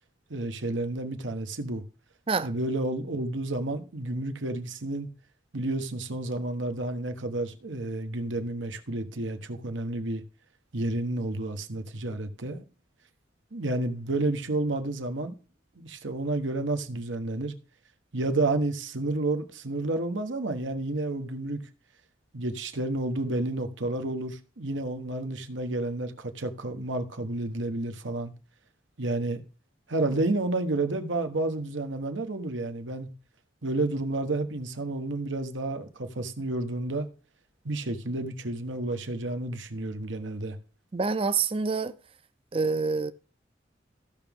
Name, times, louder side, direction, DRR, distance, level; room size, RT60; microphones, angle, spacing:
voice 1, 0.3-1.8 2.4-5.1 5.5-10.2 10.7-12.6 13.5-15.3 15.8-17.5 18.1-21.6 22.3-28.3 29.0-29.4 29.9-33.1 33.6-37.1 37.6-40.6, right 2 dB, 80° right, 1.2 m, -30 dB
voice 2, 40.9-41.9 42.5-43.1, right 4 dB, 30° right, 0.5 m, -26 dB
15.0 x 6.0 x 3.6 m
head